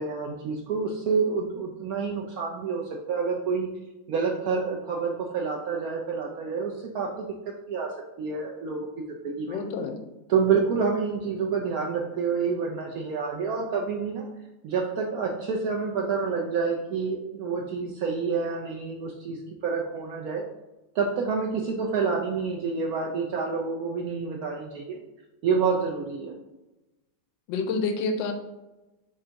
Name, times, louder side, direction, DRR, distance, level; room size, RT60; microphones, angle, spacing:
voice 1, 0.0-3.7 4.1-7.3 7.7-7.9 8.2-9.6 10.3-14.3 14.6-19.4 19.6-20.4 20.9-25.0 25.4-26.3, right 5 dB, 70° right, 0 dB, 0.8 m, -28 dB
voice 2, 9.5-10.0 27.5-28.3, left 4 dB, 85° left, 6 dB, 1.3 m, -28 dB
3.6 x 3.3 x 3.9 m, 1.0 s
omnidirectional pair, 2.0 m